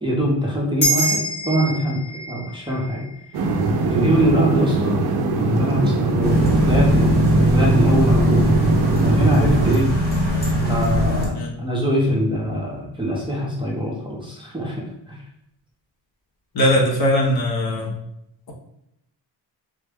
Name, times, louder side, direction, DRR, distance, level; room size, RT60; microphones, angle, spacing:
voice 1, 0.0-2.0 2.3-3.0 3.9-5.0 5.4-8.5 9.0-9.9 10.6-15.2, equal, 10° right, -4 dB, 0.6 m, -23 dB
sound 1, 0.8-5.5, right 1 dB, 85° left, 1.4 m, -28 dB
sound 2, 3.3-9.8, right 3 dB, 60° right, 0.5 m, -22 dB
sound 3, 6.2-11.2, equal, 20° left, 0.9 m, -19 dB
voice 2, 16.5-17.9, equal, 55° left, 0 dB, 0.8 m, -20 dB
3.7 x 2.1 x 3.4 m, 0.81 s
wide cardioid pair, 160°, 44 cm